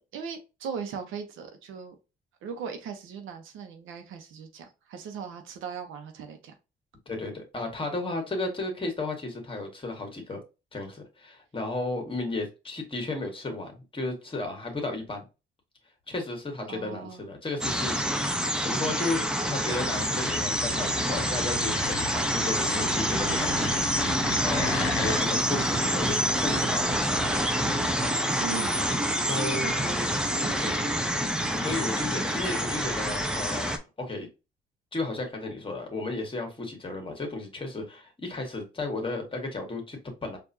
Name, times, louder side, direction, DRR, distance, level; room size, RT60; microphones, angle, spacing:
voice 1, 0.1-2.0 2.4-6.5 16.7-17.3 28.4-28.8 29.6-31.3, right 6 dB, 85° right, 0.9 m, -39 dB
voice 2, 7.1-10.4 10.7-15.2 16.1-23.7 24.4-27.5 28.0-28.3 29.2-29.7 30.6-30.8 31.6-34.3 34.9-40.4, left 2 dB, 25° left, 1.4 m, -34 dB
sound 1, 17.6-33.8, equal, 5° right, 0.6 m, -27 dB
sound 2, 19.6-25.3, left 5 dB, 75° left, 0.7 m, -36 dB
4.6 x 2.6 x 2.6 m
cardioid pair, 90°, 20 cm